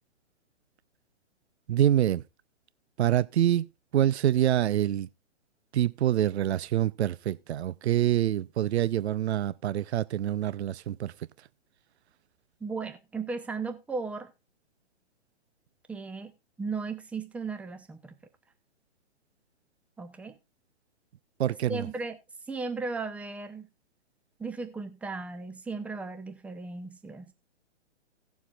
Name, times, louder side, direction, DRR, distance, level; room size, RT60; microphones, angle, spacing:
voice 1, 1.7-2.2 3.0-5.1 5.7-11.1 21.4-21.9, right 11 dB, 65° right, 0.6 m, -26 dB
voice 2, 12.6-14.3 15.9-18.1 20.0-20.4 21.7-22.2 22.5-23.7 24.4-27.3, right 4 dB, 5° right, 0.7 m, -36 dB
17.5 x 7.2 x 2.4 m
hypercardioid pair, 130°, 35 cm